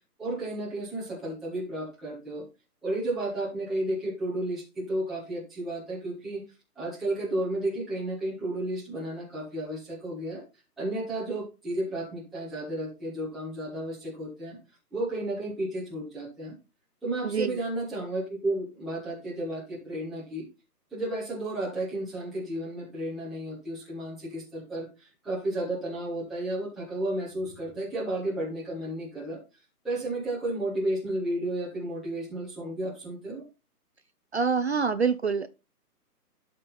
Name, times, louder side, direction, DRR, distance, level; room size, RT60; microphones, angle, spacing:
voice 1, 0.2-2.4 2.8-6.4 6.8-10.4 10.8-14.6 14.9-16.5 17.0-20.4 20.9-29.4 29.8-33.4, right 1 dB, ahead, 0.7 m, -32 dB
voice 2, 17.2-17.6 34.3-35.5, right 5 dB, 45° right, 0.5 m, -26 dB
12.0 x 4.3 x 4.0 m
hypercardioid pair, 150°, 48 cm